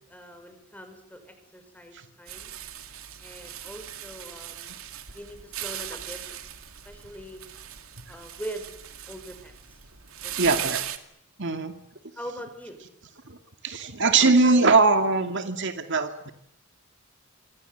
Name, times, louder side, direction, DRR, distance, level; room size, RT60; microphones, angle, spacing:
voice 1, 0.1-2.6 3.2-4.7 5.1-6.4 6.8-7.4 8.1-8.7 9.1-9.8 10.2-10.9 12.2-12.8, equal, 10° left, 7 dB, 6.0 m, -42 dB
sound 1, 2.3-11.0, right 11 dB, 90° right, 2.5 m, -38 dB
voice 2, 10.4-10.8 11.4-11.7 13.3-13.4 13.6-16.3, right 3 dB, 60° right, 7 dB, 2.3 m, -21 dB
27.5 x 25.0 x 8.1 m, 0.75 s
head